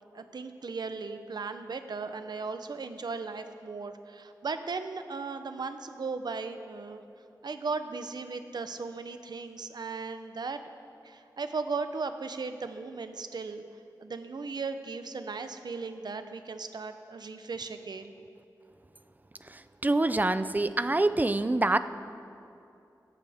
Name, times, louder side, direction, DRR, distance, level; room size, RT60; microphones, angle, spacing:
voice 1, 0.1-7.0 7.4-10.6 11.0-13.6 14.0-18.1, right 4 dB, 70° right, 9 dB, 0.7 m, -37 dB
voice 2, 19.8-21.8, right 2 dB, 25° right, 12 dB, 0.4 m, -25 dB
16.0 x 13.0 x 3.5 m, 2.6 s
wide cardioid pair, 80°, 7 cm